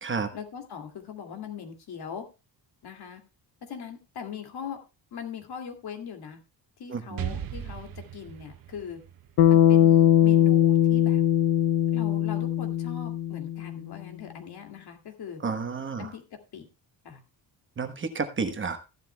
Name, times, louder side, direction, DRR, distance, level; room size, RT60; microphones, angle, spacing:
voice 1, 0.3-2.2 2.8-3.2 3.6-4.8 5.1-6.4 6.8-9.0 9.5-11.2 11.9-15.4 16.0-16.2 16.5-16.7 17.0-17.2, left 7 dB, 60° left, 4 dB, 2.5 m, -40 dB
voice 2, 6.9-7.4 15.4-16.1 17.8-18.8, right 4 dB, 25° right, 7 dB, 1.2 m, -31 dB
Explosion, 7.2-10.9, right 9 dB, 55° right, 0.9 m, -38 dB
Bass guitar, 9.4-13.8, left 11 dB, 90° left, 0.8 m, -20 dB
15.0 x 11.5 x 2.3 m, 0.29 s
cardioid pair, 160°, 43 cm